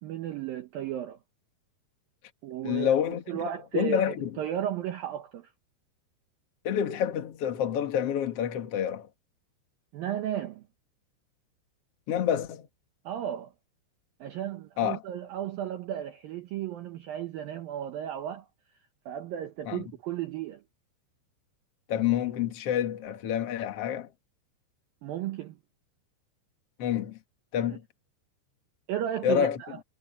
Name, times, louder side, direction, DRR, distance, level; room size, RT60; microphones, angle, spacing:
voice 1, 0.0-1.2 2.4-3.0 3.3-5.5 9.9-10.6 13.1-13.5 14.2-18.5 19.1-20.6 25.0-25.6 27.6-27.7 28.9-29.8, right 11 dB, 75° right, 2.2 m, -34 dB
voice 2, 2.6-3.4 3.7-4.3 6.6-9.1 12.1-12.7 14.8-15.0 19.6-19.8 21.9-24.1 26.8-27.2 27.5-27.8 29.2-29.6, left 9 dB, 60° left, 1.5 m, -28 dB
omnidirectional pair, 5.5 m